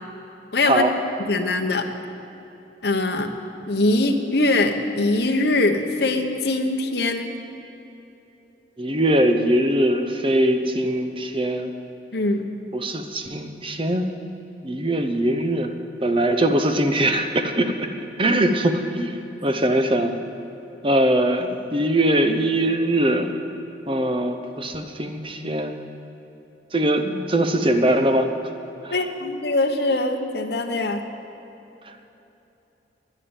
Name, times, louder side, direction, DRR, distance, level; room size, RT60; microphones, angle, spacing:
voice 1, 0.5-0.8 1.3-1.8 2.8-3.3 3.7-7.3 12.1-12.4 28.9-31.0, left 2 dB, 60° left, 4 dB, 1.0 m, -22 dB
voice 2, 8.8-11.7 12.7-14.0 14.6-15.7 16.0-17.7 18.2-20.2 20.8-23.3 23.9-25.8 26.7-28.3 28.8-29.0, right 1 dB, 30° right, 6 dB, 0.8 m, -21 dB
11.0 x 10.0 x 9.0 m, 3.0 s
head